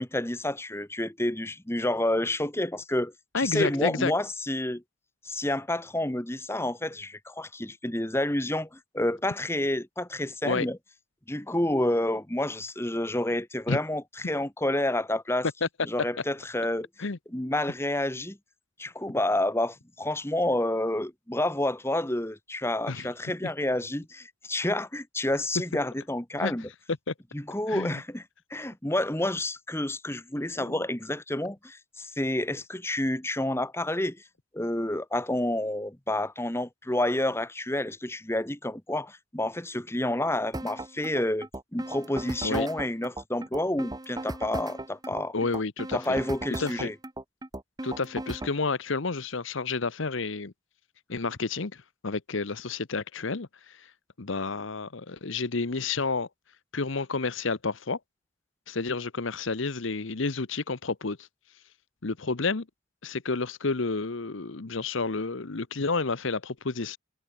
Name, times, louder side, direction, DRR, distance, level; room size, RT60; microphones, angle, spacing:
voice 1, 0.0-4.8 5.2-10.8 11.3-15.5 15.8-16.9 17.3-18.4 18.8-26.7 27.3-28.2 28.5-34.2 34.5-45.3 45.9-46.9, left 1 dB, 10° left, 1.4 m, -29 dB
voice 2, 3.3-4.1 10.4-10.7 13.7-13.8 15.6-15.7 17.0-17.2 22.9-23.1 26.4-26.5 27.1-27.2 27.7-28.0 30.6-30.8 42.4-42.7 45.3-46.2 46.6-46.9 47.8-50.5 51.1-53.9 54.2-56.3 56.7-58.0 58.7-61.3 62.0-62.7 63.0-67.0, left 4 dB, 65° left, 1.0 m, -30 dB
sound 1, 40.5-48.6, right 1 dB, 20° right, 1.3 m, -37 dB
head